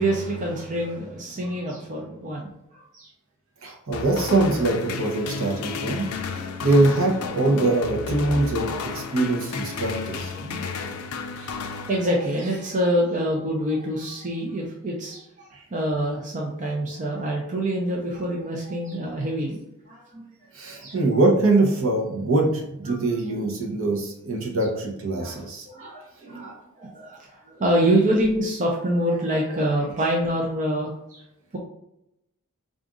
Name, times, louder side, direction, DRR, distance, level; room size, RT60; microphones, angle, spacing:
voice 1, 0.0-2.5 2.9-3.1 10.1-10.2 10.6-10.9 11.9-19.6 19.9-20.2 20.6-21.0 23.0-23.2 25.1-31.2, right 1 dB, 35° right, -2 dB, 0.5 m, -26 dB
voice 2, 3.6-6.0 6.3-10.6 11.4-11.5 15.5-15.6 20.5-25.7 26.2-26.5, right 2 dB, 60° right, 0 dB, 0.8 m, -23 dB
sound 1, 3.9-12.5, left 5 dB, 80° left, 0.4 m, -32 dB
3.8 x 2.5 x 3.6 m, 0.83 s
head